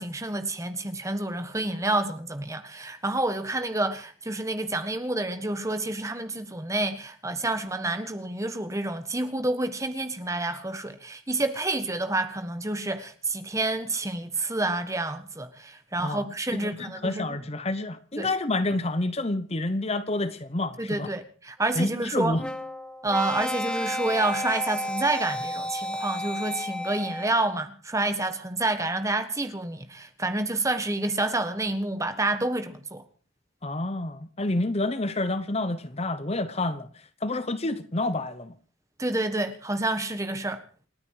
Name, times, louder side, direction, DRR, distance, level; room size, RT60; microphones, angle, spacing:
voice 1, 0.0-17.3 18.2-18.3 20.8-22.4 23.0-33.0 39.0-40.6, right 2 dB, 15° right, 1.4 m, -29 dB
voice 2, 16.5-21.1 21.8-22.4 33.6-36.9 37.2-38.5, left 2 dB, 30° left, 0.9 m, -28 dB
sound 1, 22.4-27.5, equal, 5° left, 1.0 m, -32 dB
28.5 x 9.6 x 4.8 m
head